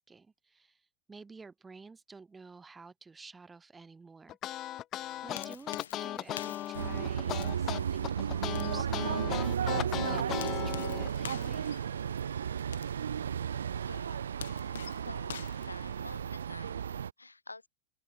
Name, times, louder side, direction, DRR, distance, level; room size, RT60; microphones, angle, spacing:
voice 1, 0.0-4.4 5.2-11.7, right 4 dB, 10° right, 5.6 m, -51 dB
sound 1, 4.3-11.1, left 13 dB, 30° left, 0.3 m, -37 dB
sound 2, 5.0-16.5, left 9 dB, 65° left, 2.0 m, -49 dB
sound 3, 6.7-17.1, right 8 dB, 65° right, 0.7 m, -34 dB
voice 2, 13.7-14.2 14.9-15.4 15.6-17.7, left 3 dB, 80° left, 5.2 m, -49 dB
open air
figure-of-eight pair, 90°, 0 cm